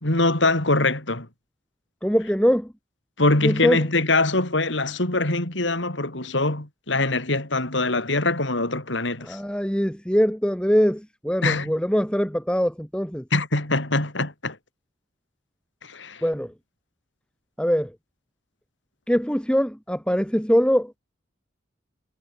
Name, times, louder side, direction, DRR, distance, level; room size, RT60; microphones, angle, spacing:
voice 1, 0.0-1.3 3.2-9.4 11.4-11.7 13.3-14.6 15.8-16.2, left 2 dB, 70° left, 4.1 m, -23 dB
voice 2, 2.0-2.7 3.4-3.8 9.2-13.3 16.2-16.5 17.6-18.0 19.1-21.0, equal, 5° left, 4.2 m, -22 dB
head